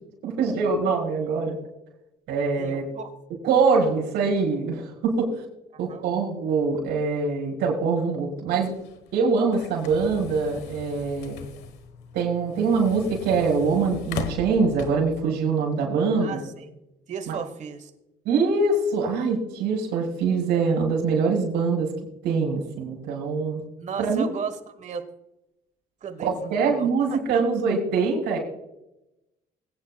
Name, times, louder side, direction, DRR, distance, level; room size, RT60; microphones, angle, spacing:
voice 1, 0.2-1.6 2.3-2.9 3.4-5.3 5.8-8.7 9.1-11.4 12.1-16.4 17.3-17.4 18.2-21.9 22.2-23.6 24.0-24.3 26.2-28.4, right 4 dB, 80° right, -2 dB, 4.4 m, -24 dB
voice 2, 2.6-3.1 5.7-6.0 16.2-16.8 17.1-17.9 23.8-25.1 26.0-27.2, right 6 dB, 45° right, 9 dB, 1.4 m, -35 dB
sound 1, 8.7-15.3, left 5 dB, 85° left, 1.3 m, -39 dB
21.0 x 9.4 x 2.3 m, 0.91 s
cardioid pair, 110°, 17 cm